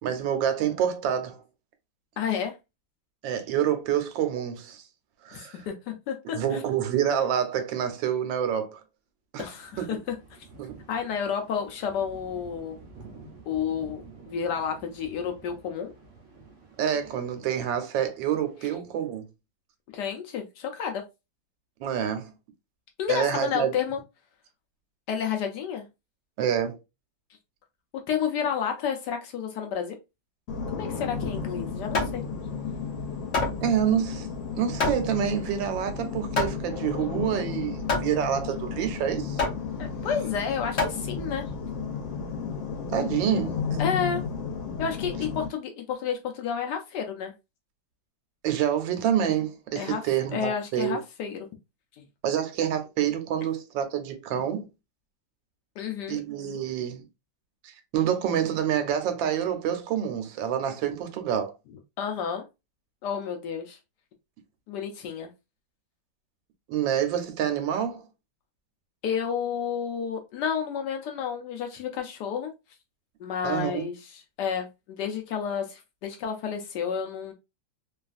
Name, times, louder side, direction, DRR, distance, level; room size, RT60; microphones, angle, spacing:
voice 1, 0.0-1.4 3.2-4.8 5.2-5.6 6.3-8.8 9.3-9.5 9.8-10.0 10.6-10.8 16.8-19.3 21.8-22.3 23.1-23.7 26.4-26.8 33.6-34.3 34.5-39.4 42.9-43.6 48.4-51.0 52.2-54.6 56.1-57.0 57.6-61.5 66.7-68.1 73.4-73.8, right 9 dB, 80° right, 1.3 m, -27 dB
voice 2, 2.2-2.5 5.3-6.6 9.4-10.0 10.9-12.8 13.5-15.9 19.9-21.0 23.0-24.0 25.1-25.8 28.1-30.0 30.8-32.2 39.8-41.4 43.8-44.2 44.8-47.3 49.7-50.0 50.3-51.5 52.0-52.1 55.8-56.2 62.0-62.4 63.0-63.8 64.7-65.3 69.0-72.5 73.2-77.3, left 7 dB, 75° left, 1.0 m, -31 dB
sound 1, 9.4-18.7, right 4 dB, 65° right, 0.7 m, -49 dB
sound 2, 30.5-45.5, left 6 dB, 90° left, 1.4 m, -33 dB
Hammer, 31.3-41.6, left 3 dB, 50° left, 0.8 m, -31 dB
3.1 x 2.4 x 2.4 m
omnidirectional pair, 2.0 m